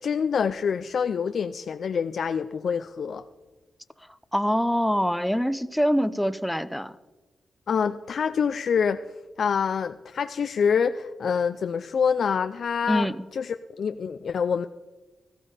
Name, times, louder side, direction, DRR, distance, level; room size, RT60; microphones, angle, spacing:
voice 1, 0.0-3.2 7.7-9.0 9.4-14.7, left 6 dB, 70° left, 9 dB, 0.5 m, -26 dB
voice 2, 4.3-6.9 12.9-13.2, equal, ahead, 12 dB, 0.6 m, -24 dB
14.5 x 14.0 x 5.0 m, 1.2 s
cardioid pair, 75°, 0 cm